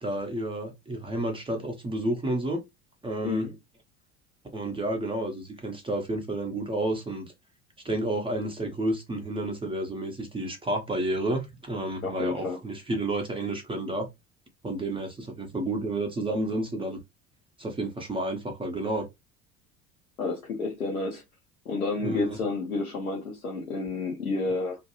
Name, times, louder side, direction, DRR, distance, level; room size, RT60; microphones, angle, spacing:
voice 1, 0.0-2.6 3.0-3.5 4.5-7.3 7.8-14.1 14.6-17.0 17.6-19.1 22.0-22.4, right 1 dB, 10° right, 0.7 m, -30 dB
voice 2, 3.2-3.5 12.0-12.6 20.2-21.2 21.7-24.8, left 3 dB, 85° left, 0.8 m, -30 dB
2.5 x 2.2 x 2.9 m
figure-of-eight pair, 70°, 43 cm